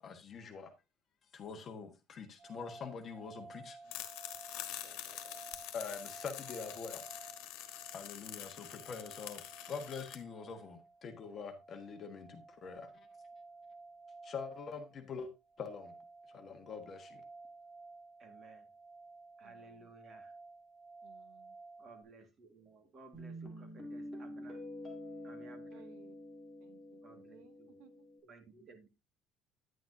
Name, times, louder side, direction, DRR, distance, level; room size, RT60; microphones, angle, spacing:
voice 1, 0.0-0.7 1.3-3.8 5.7-7.0 7.9-13.1 14.2-15.3 15.6-15.9 16.3-17.2, left 5 dB, 30° left, 1.4 m, -45 dB
sound 1, 2.4-22.0, right 3 dB, 50° right, 3.2 m, -55 dB
sound 2, 3.9-10.2, left 13 dB, 85° left, 1.4 m, -46 dB
voice 2, 4.6-5.4 18.2-18.7 19.4-20.3 21.8-24.6 25.2-25.8 27.0-27.8 28.2-28.9, right 3 dB, 30° right, 1.8 m, -58 dB
voice 3, 19.4-19.9 21.0-21.6 25.7-26.2 26.6-28.1, right 12 dB, 80° right, 0.9 m, -62 dB
Guitar, 23.1-28.2, left 1 dB, 5° right, 2.2 m, -47 dB
10.0 x 9.0 x 2.7 m
cardioid pair, 175°, 0 cm